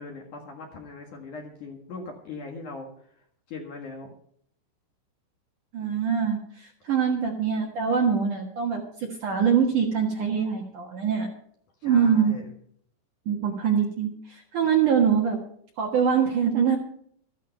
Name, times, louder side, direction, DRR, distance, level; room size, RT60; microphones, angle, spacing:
voice 1, 0.0-2.9 3.5-4.1 11.8-12.5, left 3 dB, 60° left, 2 dB, 2.3 m, -40 dB
voice 2, 5.7-11.3 11.8-12.3 13.3-15.4 15.8-16.8, right 7 dB, 65° right, 1 dB, 2.0 m, -24 dB
13.5 x 13.0 x 4.5 m, 0.64 s
omnidirectional pair, 5.8 m